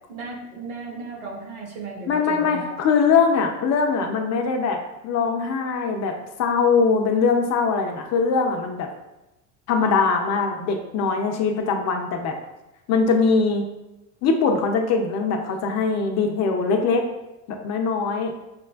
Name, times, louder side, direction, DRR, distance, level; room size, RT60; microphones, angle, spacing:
voice 1, 0.1-2.7, right 3 dB, 75° right, -2 dB, 1.2 m, -35 dB
voice 2, 2.1-4.8 5.0-8.9 9.7-12.4 12.9-13.7 14.2-17.1 17.5-18.4, left 5 dB, 40° left, 4 dB, 0.6 m, -22 dB
5.8 x 2.2 x 2.3 m, 0.97 s
hypercardioid pair, 85°, 42 cm